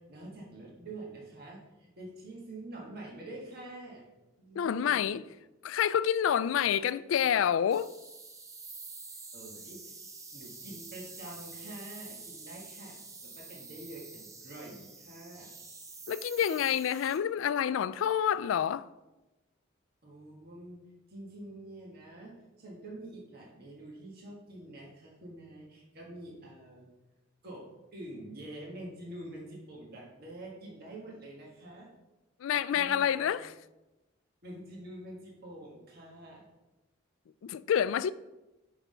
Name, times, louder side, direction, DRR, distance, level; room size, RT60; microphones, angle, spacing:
voice 1, 0.0-4.1 4.4-5.2 9.3-10.0 10.3-15.5 20.0-20.8 21.1-26.9 27.4-31.9 32.4-33.3 34.4-36.4, right 1 dB, 50° right, 1.6 m, -46 dB
voice 2, 4.6-5.2 5.6-7.9 16.1-18.9 32.4-33.5 37.4-38.1, left 9 dB, 80° left, 0.3 m, -28 dB
sound 1, 7.7-17.2, right 4 dB, 15° right, 0.7 m, -48 dB
6.1 x 5.6 x 5.5 m
head